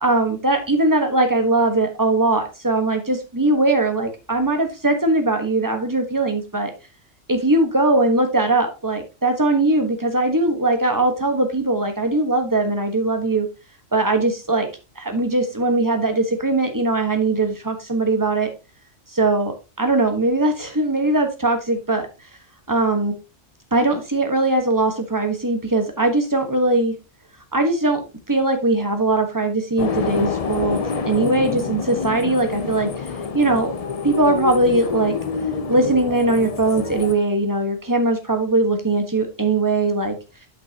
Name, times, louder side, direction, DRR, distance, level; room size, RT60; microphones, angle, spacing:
voice 1, 0.0-6.7 7.3-13.5 13.9-14.7 15.0-18.5 19.1-22.0 22.7-23.1 23.7-27.0 27.5-33.0 33.3-33.7 34.0-35.1 35.7-40.2, right 2 dB, 15° right, 5 dB, 1.2 m, -20 dB
sound 1, 29.8-37.1, left 5 dB, 40° left, 0.5 m, -27 dB
8.2 x 5.9 x 2.8 m, 0.29 s
omnidirectional pair, 1.3 m